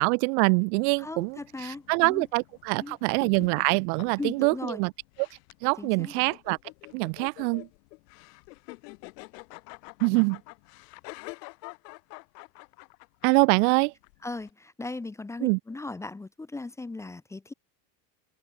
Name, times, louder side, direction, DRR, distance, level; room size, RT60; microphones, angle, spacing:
voice 1, 0.0-4.9 5.2-5.3 5.6-6.6 6.9-7.7 10.0-10.4 13.2-13.9 15.4-15.6, right 35 dB, 70° right, 0.5 m, -24 dB
sound 1, 0.9-14.5, left 26 dB, 80° left, 5.8 m, -48 dB
voice 2, 1.0-2.3 2.8-3.0 4.2-4.8 5.8-6.1 10.1-10.3 14.2-17.5, left 3 dB, 5° left, 0.7 m, -37 dB
open air
cardioid pair, 170°, 47 cm